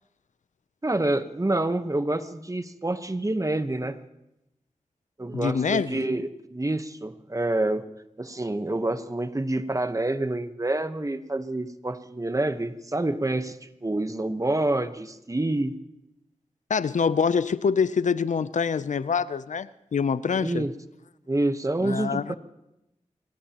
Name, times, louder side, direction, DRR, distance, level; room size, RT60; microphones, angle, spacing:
voice 1, 0.8-4.0 5.2-7.8 8.2-15.8 20.4-20.7 21.3-22.4, right 2 dB, 25° right, 10 dB, 1.0 m, -27 dB
voice 2, 5.3-6.1 16.7-20.6 21.8-22.4, left 6 dB, 75° left, 16 dB, 0.5 m, -25 dB
24.0 x 18.5 x 3.0 m, 0.89 s
cardioid pair, 50°, 13 cm